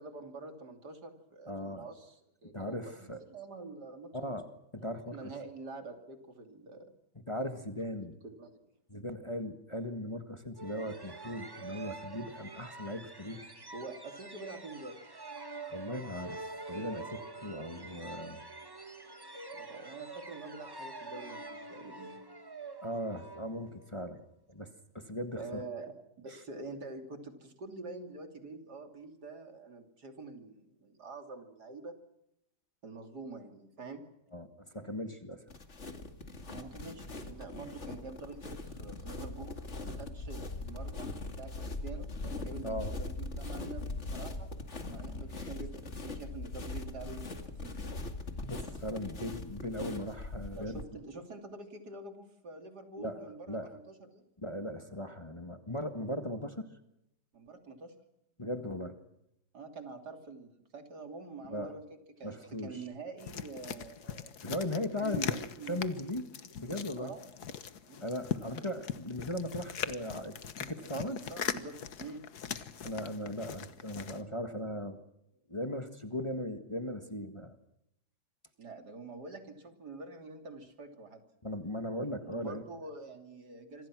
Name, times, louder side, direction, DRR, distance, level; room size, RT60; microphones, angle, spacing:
voice 1, 0.0-4.3 5.1-6.9 8.2-8.6 13.7-15.0 19.5-22.1 25.3-32.0 32.8-34.0 36.5-44.5 44.8-47.2 47.6-48.0 50.5-54.2 57.3-57.9 59.5-61.8 62.2-62.4 62.6-64.4 64.9-65.8 67.0-67.2 67.9-68.1 70.8-72.2 78.6-81.2 82.2-83.9, right 3 dB, 70° right, 6 dB, 3.5 m, -46 dB
voice 2, 1.5-1.9 2.5-3.2 4.1-4.5 4.7-5.3 7.3-8.2 8.9-13.4 15.7-16.4 16.7-18.4 19.4-19.5 22.8-24.2 24.5-24.7 24.9-25.6 34.3-34.5 34.7-35.4 42.6-42.9 45.3-45.5 48.4-50.8 53.0-53.7 54.4-56.7 58.4-58.9 61.5-61.7 62.2-62.8 64.4-65.4 65.7-67.1 68.0-71.2 72.8-75.0 75.5-77.6 81.4-82.6, left 1 dB, 20° left, 7 dB, 1.6 m, -38 dB
sound 1, 10.6-24.1, right 3 dB, 15° right, 1.2 m, -46 dB
sound 2, 35.5-50.8, left 2 dB, 45° left, 2.5 m, -41 dB
sound 3, 63.2-74.2, left 8 dB, 70° left, 1.7 m, -40 dB
26.5 x 25.5 x 6.2 m, 0.81 s
omnidirectional pair, 1.8 m